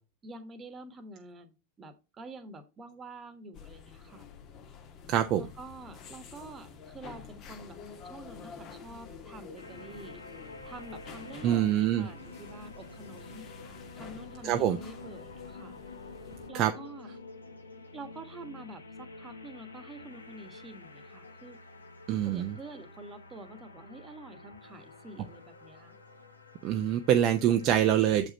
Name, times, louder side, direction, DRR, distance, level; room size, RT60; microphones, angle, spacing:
voice 1, 0.2-4.3 5.3-10.2 10.6-13.5 13.9-15.8 16.5-17.1 17.9-21.6 22.2-26.0, right 2 dB, 20° right, 10 dB, 1.3 m, -47 dB
sound 1, 3.5-16.5, left 6 dB, 35° left, 1.4 m, -49 dB
voice 2, 5.1-5.5 11.4-12.1 14.4-14.8 16.5-16.7 22.1-22.6 26.6-28.3, right 11 dB, 35° right, 6 dB, 0.6 m, -25 dB
sound 2, 9.6-27.8, left 3 dB, 75° left, 1.2 m, -48 dB
7.4 x 5.0 x 4.2 m, 0.28 s
figure-of-eight pair, 90°, 0 cm